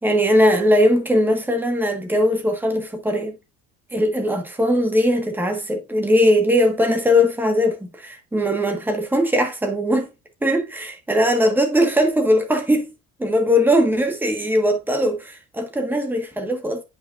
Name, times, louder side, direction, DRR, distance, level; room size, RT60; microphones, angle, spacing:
voice 1, 0.0-3.3 3.9-10.1 10.4-12.9 13.2-16.8, equal, 5° right, 1.5 m, -20 dB
9.2 x 5.6 x 2.5 m
cardioid pair, 150°, 29 cm